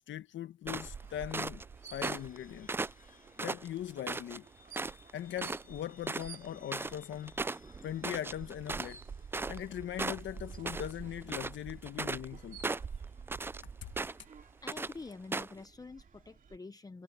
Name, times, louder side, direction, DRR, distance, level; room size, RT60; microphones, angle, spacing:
voice 1, 0.0-2.7 3.4-4.5 5.1-7.4 7.8-9.0 9.5-12.6, left 11 dB, 70° left, 1.5 m, -40 dB
sound 1, 0.6-16.6, right 6 dB, 40° right, 2.9 m, -50 dB
sound 2, 0.7-1.6 2.0-2.4 2.7-4.4 4.7-5.1 5.4-5.6 5.9-9.7 10.0-10.9 11.2-12.3 12.6-13.6 14.0-14.3 14.7-14.9 15.3-15.6, right 3 dB, 10° right, 0.3 m, -37 dB
sound 3, 2.1-14.6, left 6 dB, 45° left, 6.4 m, -65 dB
voice 2, 14.6-17.0, left 3 dB, 20° left, 0.8 m, -47 dB
cardioid pair, 90°, 20 cm